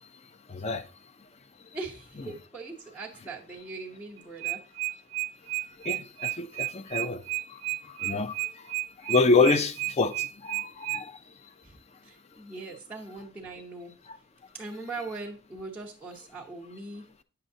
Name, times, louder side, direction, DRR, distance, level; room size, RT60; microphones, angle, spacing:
voice 1, 0.5-0.8 5.8-7.2 7.5-8.7 9.0-11.2 14.1-14.2, left 3 dB, 30° left, 0.4 m, -27 dB
voice 2, 1.7-4.6 7.8-7.9 11.6-13.9 14.5-17.0, right 3 dB, 5° left, 0.9 m, -40 dB
sound 1, 4.2-11.0, right 19 dB, 60° right, 0.5 m, -31 dB
8.9 x 6.8 x 2.7 m
head